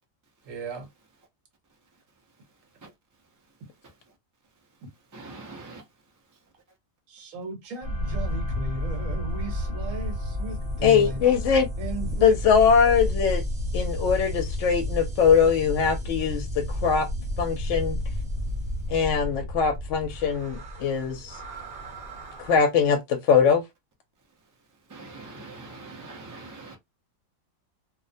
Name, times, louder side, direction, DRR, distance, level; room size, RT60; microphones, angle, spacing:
voice 1, 0.5-0.9 7.1-11.2 11.8-12.4, right 3 dB, 75° right, 1.2 m, -35 dB
voice 2, 5.1-5.8 24.9-26.8, right 3 dB, 30° right, 0.3 m, -42 dB
sound 1, 7.8-22.6, left 1 dB, 50° right, 0.8 m, -31 dB
voice 3, 10.8-11.7 12.2-13.4 13.7-17.1 17.4-18.0 18.9-21.4 22.4-23.6, left 6 dB, 70° left, 0.8 m, -22 dB
2.4 x 2.0 x 2.5 m
omnidirectional pair, 1.4 m